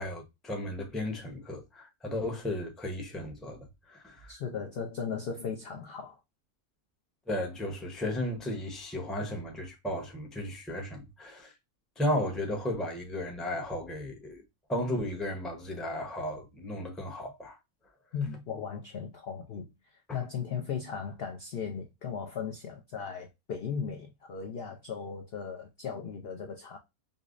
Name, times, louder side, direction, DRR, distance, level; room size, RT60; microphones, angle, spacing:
voice 1, 0.0-4.3 7.3-11.5 12.0-14.4 14.7-17.6 20.1-20.2, left 1 dB, ahead, 0.5 m, -34 dB
voice 2, 4.3-6.2 18.1-19.7 20.1-26.8, left 6 dB, 65° left, 0.6 m, -37 dB
5.3 x 2.0 x 2.4 m
omnidirectional pair, 1.5 m